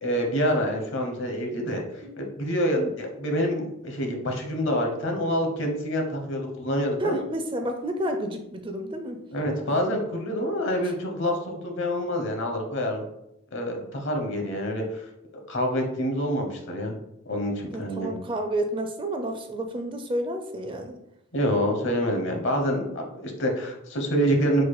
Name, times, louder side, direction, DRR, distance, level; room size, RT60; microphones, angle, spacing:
voice 1, 0.0-1.8 2.2-7.2 9.3-13.1 13.5-15.0 15.5-17.0 17.3-18.1 21.3-24.6, equal, 60° left, 3 dB, 0.9 m, -27 dB
voice 2, 7.0-9.2 17.7-21.0, right 1 dB, 25° right, 5 dB, 0.4 m, -30 dB
4.4 x 2.2 x 4.7 m, 0.79 s
head